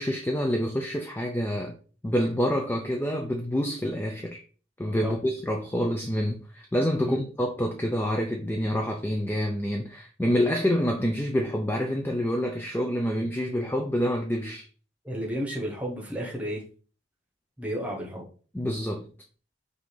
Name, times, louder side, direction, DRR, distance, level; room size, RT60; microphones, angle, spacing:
voice 1, 0.0-1.7 2.0-4.4 4.8-14.7 18.5-19.1, equal, 10° left, 0.3 m, -27 dB
voice 2, 15.0-16.6 17.6-18.2, equal, 5° right, 1.0 m, -32 dB
5.4 x 2.6 x 3.2 m
head